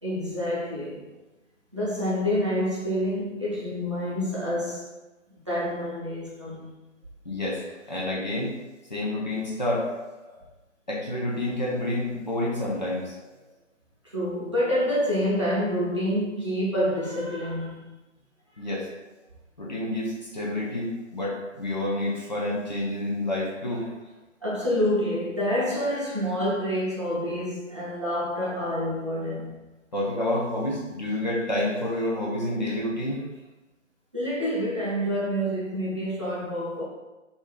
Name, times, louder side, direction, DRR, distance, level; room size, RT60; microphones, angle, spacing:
voice 1, 0.0-1.0 1.7-4.8 5.5-6.7 10.3-10.4 14.0-17.9 24.4-29.6 34.1-36.8, equal, 25° right, -8 dB, 0.5 m, -27 dB
voice 2, 7.2-7.6 7.9-8.5 8.9-9.9 10.9-13.2 18.6-18.9 19.6-23.9 29.9-33.2, left 1 dB, 35° left, -4 dB, 0.5 m, -28 dB
2.6 x 2.4 x 3.5 m, 1.1 s
figure-of-eight pair, 145°, 38 cm